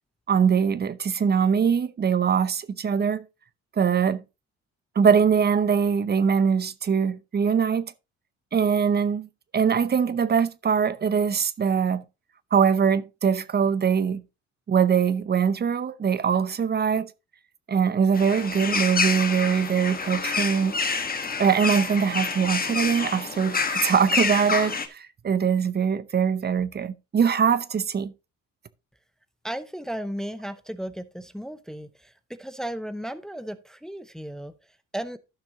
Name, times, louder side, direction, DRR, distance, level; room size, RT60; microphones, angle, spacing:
voice 1, 0.3-3.2 3.8-4.2 5.0-7.9 8.5-9.3 9.5-12.0 12.5-14.2 14.7-17.1 17.7-20.8 21.4-28.1, right 7 dB, 35° right, 0.7 m, -22 dB
sound 1, 18.1-24.9, left 5 dB, 30° left, 1.3 m, -28 dB
voice 2, 29.4-35.2, right 1 dB, ahead, 0.7 m, -35 dB
14.5 x 5.9 x 2.7 m
cardioid pair, 90°, 30 cm